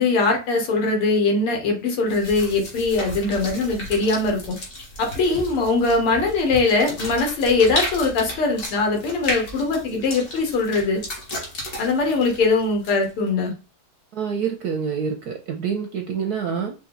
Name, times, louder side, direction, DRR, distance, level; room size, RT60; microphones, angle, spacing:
voice 1, 0.0-4.6 5.0-11.0 11.8-13.5, left 3 dB, 85° left, 3 dB, 2.2 m, -21 dB
sound 1, 2.1-13.3, equal, 40° left, 1.8 m, -34 dB
voice 2, 14.1-16.7, right 6 dB, 70° right, 4 dB, 0.9 m, -26 dB
5.3 x 2.6 x 3.9 m, 0.32 s
omnidirectional pair, 2.4 m